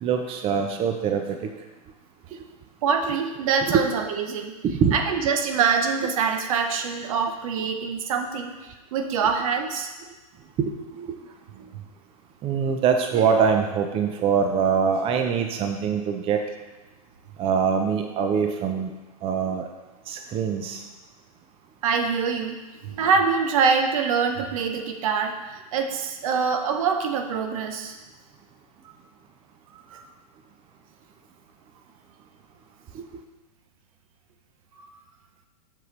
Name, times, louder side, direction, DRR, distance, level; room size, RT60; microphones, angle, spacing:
voice 1, 0.0-1.4 4.6-5.0 11.0-11.2 12.4-16.4 17.4-18.9 19.2-19.6 20.1-20.8, right 6 dB, 30° right, 4 dB, 0.6 m, -23 dB
voice 2, 2.8-4.5 4.9-9.9 11.6-11.8 21.8-22.6 22.8-25.3 25.7-28.0 29.7-30.0, right 5 dB, 65° right, 5 dB, 0.8 m, -24 dB
7.5 x 5.2 x 3.2 m, 1.2 s
hypercardioid pair, 110°, 19 cm